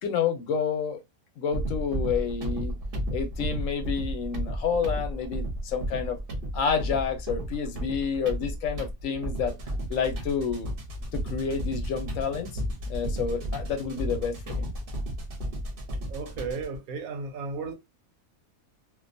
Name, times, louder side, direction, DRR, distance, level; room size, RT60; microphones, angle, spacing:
voice 1, 0.0-1.0 1.4-2.7 3.1-6.2 6.5-9.5 9.9-10.7 11.1-12.6 12.9-14.7, left 6 dB, 70° left, 0.9 m, -29 dB
sound 1, 1.5-16.8, equal, 50° right, 0.7 m, -33 dB
voice 2, 16.1-17.7, right 4 dB, 85° right, 1.1 m, -34 dB
2.5 x 2.2 x 2.5 m
omnidirectional pair, 1.5 m